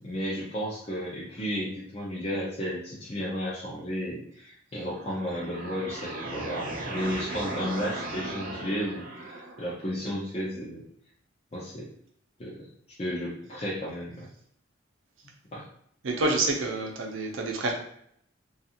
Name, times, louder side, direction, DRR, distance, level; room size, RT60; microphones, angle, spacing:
voice 1, 0.0-10.8 11.5-11.9 12.4-12.7 13.0-14.3 15.5-15.6, equal, 30° left, -6 dB, 0.5 m, -33 dB
sound 1, 4.8-9.8, right 2 dB, 45° right, 0.5 m, -37 dB
voice 2, 16.0-17.7, right 2 dB, 85° right, 1 dB, 0.6 m, -27 dB
2.4 x 2.4 x 2.8 m, 0.68 s
head